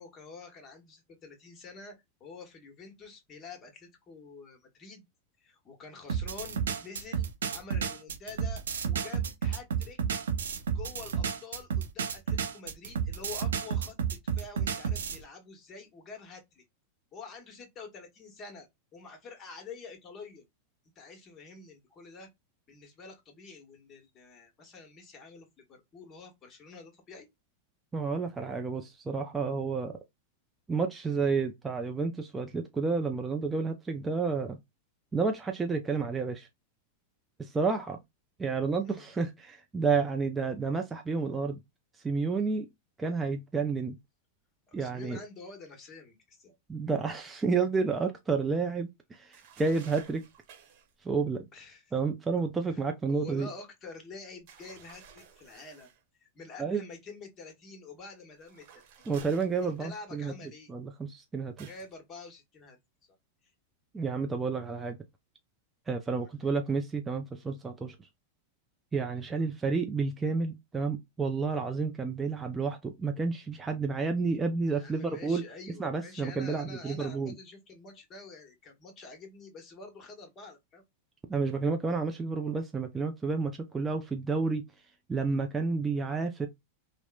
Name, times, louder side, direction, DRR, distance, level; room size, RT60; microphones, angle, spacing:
voice 1, 0.0-1.9 2.2-5.0 5.4-10.0 10.7-16.6 17.1-18.7 18.9-20.4 21.0-22.3 22.7-27.3 38.8-39.1 44.7-46.5 51.5-51.8 52.7-52.8 53.1-55.9 56.2-58.6 59.6-60.7 61.7-62.8 66.2-66.5 69.3-69.5 74.7-80.8, left 4 dB, 30° left, 1.0 m, -47 dB
sound 1, 6.1-15.2, right 7 dB, 85° right, 0.5 m, -31 dB
voice 2, 27.9-30.0 30.7-34.6 35.1-36.5 37.4-38.0 38.4-41.6 42.0-42.7 43.0-44.0 44.7-45.2 46.7-50.2 51.0-51.5 51.9-53.5 56.6-56.8 59.1-60.3 60.7-61.7 63.9-65.0 65.9-68.0 68.9-75.4 75.8-77.3 81.3-84.6 85.1-86.5, right 4 dB, 15° right, 0.4 m, -30 dB
sound 2, 49.3-50.9 54.5-56.0 58.4-60.1 61.6-61.9, right 7 dB, 55° right, 0.9 m, -54 dB
2.8 x 2.0 x 2.2 m
hypercardioid pair, 105°, 0 cm